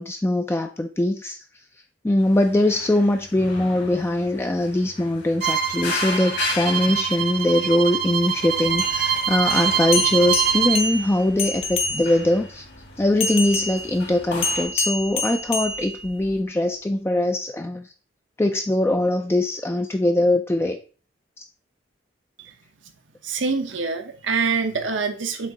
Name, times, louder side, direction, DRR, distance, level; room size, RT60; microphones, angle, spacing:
voice 1, 0.0-1.4 2.0-12.7 13.0-17.9 18.4-20.8 21.4-21.5, left 1 dB, 15° left, 5 dB, 0.3 m, -22 dB
sound 1, 2.2-14.6, left 4 dB, 60° left, 1.7 m, -36 dB
Bowed string instrument, 5.4-10.8, right 8 dB, 55° right, 0.8 m, -24 dB
sound 2, 8.7-12.4 13.2-16.4, left 3 dB, 35° left, 0.7 m, -28 dB
voice 2, 23.2-25.5, right 5 dB, 85° right, 6 dB, 0.9 m, -25 dB
7.4 x 2.7 x 4.7 m, 0.38 s
head